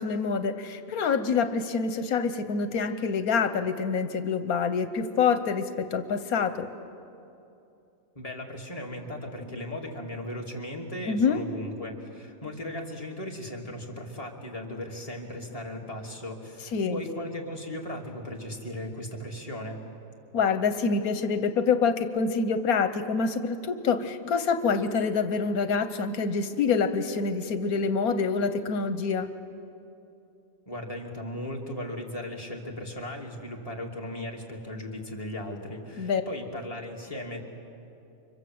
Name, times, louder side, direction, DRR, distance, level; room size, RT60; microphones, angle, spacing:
voice 1, 0.0-6.7 11.1-11.4 16.7-17.0 20.3-29.3 36.0-36.2, left 5 dB, 85° left, 9 dB, 1.4 m, -26 dB
voice 2, 8.1-19.8 30.7-37.4, left 1 dB, 25° left, -1 dB, 2.9 m, -37 dB
30.0 x 25.5 x 7.8 m, 2.8 s
omnidirectional pair, 1.5 m